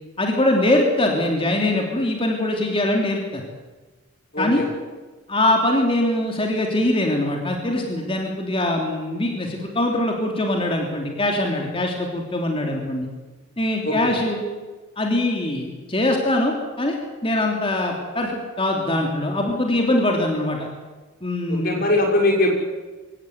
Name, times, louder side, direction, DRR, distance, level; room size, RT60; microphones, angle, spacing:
voice 1, 0.2-3.4 4.4-4.6 5.3-13.1 13.6-14.4 15.0-17.0 17.2-18.3 18.6-20.7 21.2-21.8, left 1 dB, 25° left, 1 dB, 3.2 m, -22 dB
voice 2, 4.3-4.7 13.8-14.1 21.5-22.5, left 2 dB, 45° left, 1 dB, 5.7 m, -21 dB
24.0 x 17.0 x 9.6 m, 1.2 s
head